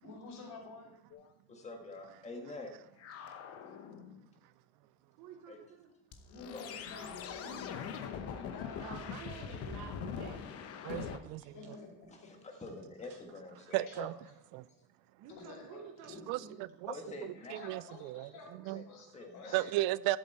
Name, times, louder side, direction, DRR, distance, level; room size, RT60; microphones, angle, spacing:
voice 1, 0.0-0.9 3.1-3.3 6.3-9.3 11.4-11.9 13.7-13.9 15.3-15.8 16.1-16.5 17.3-19.1 19.3-19.7, left 3 dB, 65° left, 4.9 m, -50 dB
sound 1, 1.1-1.3 3.0-4.2 6.1-11.2, left 7 dB, 45° left, 1.0 m, -42 dB
voice 2, 1.5-2.7 5.5-5.6 6.5-7.0 12.1-12.4 12.6-14.1 16.9-17.7 18.5-18.8 19.1-19.6, left 2 dB, 20° left, 1.7 m, -46 dB
voice 3, 5.2-5.9 8.8-10.5 13.0-13.4 14.9-16.6, right 7 dB, 60° right, 1.2 m, -51 dB
voice 4, 10.8-11.5 13.7-14.1 14.5-14.6 16.3-16.9 17.5-18.8 19.5-20.2, right 17 dB, 80° right, 0.5 m, -35 dB
12.0 x 8.0 x 4.2 m
cardioid pair, 165°, 34 cm